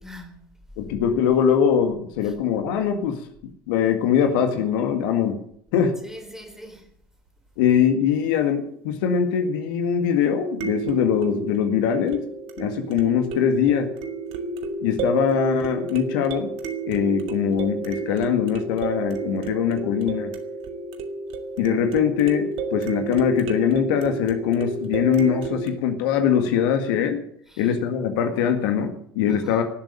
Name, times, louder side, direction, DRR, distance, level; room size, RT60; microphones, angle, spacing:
voice 1, 0.0-0.6 2.2-2.3 6.0-6.9 27.5-27.7 29.3-29.6, equal, 5° right, 4.0 m, -43 dB
voice 2, 0.8-3.2 3.7-5.4 5.7-6.0 7.6-12.2 12.6-13.9 14.8-16.5 16.9-20.3 21.6-27.2 27.6-29.6, left 8 dB, 65° left, 1.8 m, -22 dB
sound 1, 5.9-6.0 10.6-25.7, right 3 dB, 50° right, 1.9 m, -31 dB
17.5 x 7.8 x 8.8 m
figure-of-eight pair, 70°, 12 cm